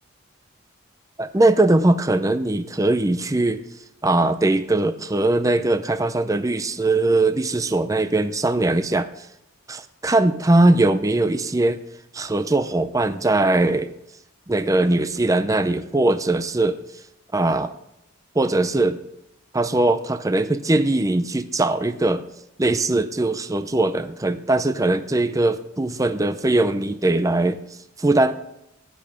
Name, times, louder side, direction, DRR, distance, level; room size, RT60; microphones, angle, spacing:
voice 1, 1.2-3.6 4.0-9.3 9.7-9.8 10.0-11.8 12.1-13.9 14.5-16.8 17.3-17.7 18.4-19.0 19.5-22.3 22.6-27.6 28.0-28.4, right 2 dB, 15° right, 11 dB, 0.5 m, -20 dB
16.0 x 10.5 x 5.1 m, 0.84 s
head